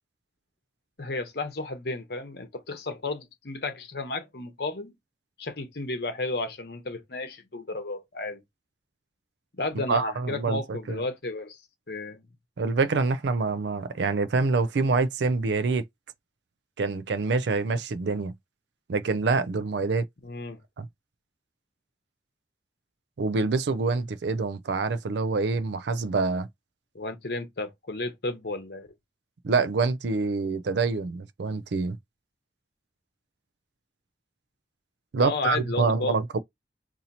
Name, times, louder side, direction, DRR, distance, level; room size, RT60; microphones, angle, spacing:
voice 1, 1.0-4.9 5.4-8.4 9.6-11.6 11.9-12.2 20.2-20.6 26.9-28.9 35.2-36.2, left 2 dB, 60° left, 0.9 m, -33 dB
voice 2, 9.9-11.0 12.6-15.8 16.8-18.3 18.9-20.0 20.8-20.9 23.2-26.5 29.4-32.0 35.1-36.4, right 4 dB, 70° right, 0.4 m, -26 dB
2.8 x 2.7 x 4.0 m
head